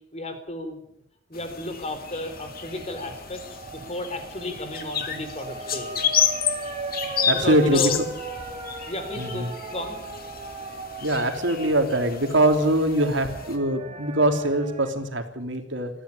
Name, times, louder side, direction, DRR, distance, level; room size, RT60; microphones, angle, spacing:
voice 1, 0.1-0.8 1.3-6.0 7.3-8.0 8.8-10.0, left 1 dB, 35° left, 8 dB, 4.3 m, -33 dB
sound 1, 1.3-13.6, left 8 dB, 50° left, 2.9 m, -31 dB
sound 2, 2.1-14.9, right 3 dB, 35° right, 4.9 m, -38 dB
voice 2, 7.2-7.9 9.2-9.5 11.0-15.9, right 1 dB, 70° right, 6 dB, 3.2 m, -23 dB
20.0 x 15.0 x 9.9 m, 0.77 s
head